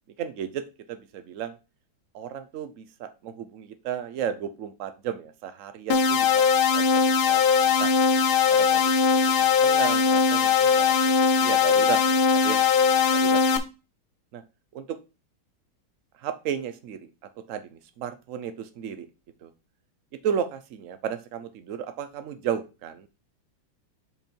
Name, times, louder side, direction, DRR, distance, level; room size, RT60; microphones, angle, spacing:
voice 1, 0.2-0.6 0.9-1.6 2.1-6.4 6.7-6.9 7.3-7.4 7.8-7.9 8.5-13.6 14.3-14.4 14.7-15.0 16.2-17.0 17.5-19.1 19.4-19.5 20.2-23.1, right 8 dB, 65° right, 10 dB, 0.8 m, -34 dB
sound 1, 5.9-13.6, left 6 dB, 85° left, 1.6 m, -20 dB
5.3 x 4.6 x 4.4 m, 0.30 s
omnidirectional pair, 2.2 m